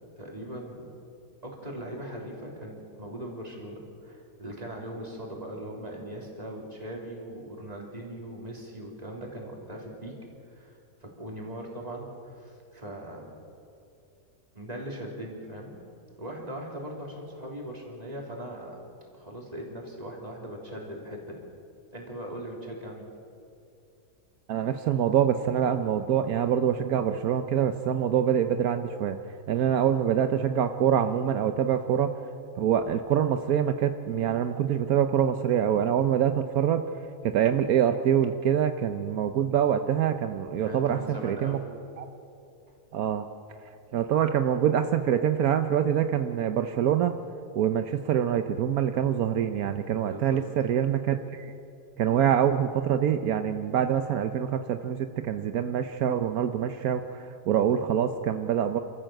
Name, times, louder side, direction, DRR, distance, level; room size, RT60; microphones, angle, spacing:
voice 1, 0.2-0.9 1.4-10.2 10.5-13.2 14.5-15.7 16.2-18.8 19.1-21.4 21.9-23.1 40.6-41.6 42.7-42.8 50.1-50.4, right 1 dB, 25° right, -1 dB, 3.7 m, -40 dB
voice 2, 24.5-29.2 29.5-32.1 32.6-36.8 37.2-41.6 42.0-42.1 42.9-43.3 43.9-47.1 47.5-51.5 52.0-58.8, right 9 dB, 80° right, 8 dB, 1.2 m, -25 dB
28.5 x 14.0 x 7.8 m, 2.6 s
omnidirectional pair, 1.5 m